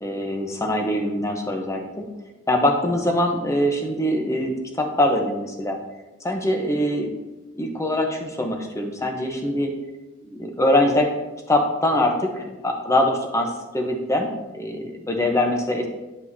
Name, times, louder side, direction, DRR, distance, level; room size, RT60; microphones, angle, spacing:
voice 1, 0.0-2.0 2.5-5.8 6.2-7.1 7.6-9.7 10.2-11.1 11.5-15.9, left 1 dB, 15° left, 3 dB, 0.8 m, -23 dB
9.6 x 5.4 x 2.7 m, 1.1 s
head